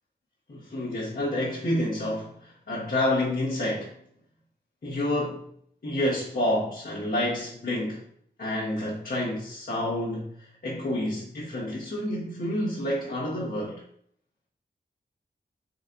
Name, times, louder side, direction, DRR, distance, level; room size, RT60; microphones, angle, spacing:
voice 1, 0.5-3.9 4.8-5.5 5.8-8.0 8.4-13.8, left 1 dB, 50° left, -8 dB, 1.4 m, -29 dB
4.0 x 3.2 x 3.9 m, 0.64 s
wide cardioid pair, 70°, 19 cm